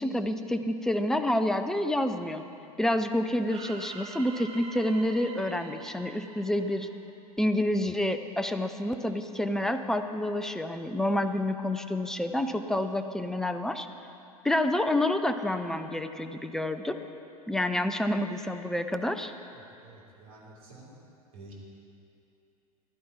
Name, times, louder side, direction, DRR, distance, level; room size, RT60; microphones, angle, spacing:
voice 1, 0.0-2.4 2.8-6.9 7.4-13.9 14.4-17.0 17.5-19.3, left 1 dB, ahead, 8 dB, 0.5 m, -28 dB
sound 1, 3.5-7.5, right 4 dB, 30° right, 1.1 m, -46 dB
voice 2, 19.8-20.9 21.3-21.5, right 2 dB, 65° right, -4 dB, 3.3 m, -50 dB
15.5 x 11.0 x 4.4 m, 2.7 s
figure-of-eight pair, 85°, 19 cm